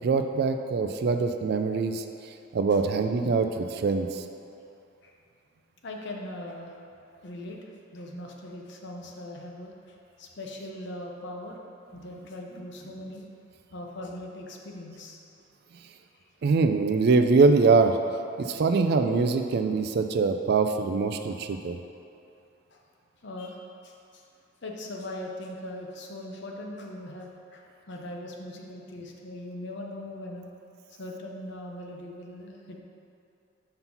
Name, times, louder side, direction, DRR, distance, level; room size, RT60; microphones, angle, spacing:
voice 1, 0.0-2.0 2.5-4.2 16.4-18.0 18.4-21.8, right 4 dB, 50° right, 7 dB, 0.3 m, -23 dB
voice 2, 5.8-6.8 7.2-11.6 11.9-13.2 13.7-15.2 16.1-16.2 22.7-22.8 23.2-24.2 24.6-30.5 30.9-32.8, left 1 dB, 60° left, 0 dB, 0.7 m, -40 dB
5.5 x 3.9 x 5.8 m, 2.7 s
head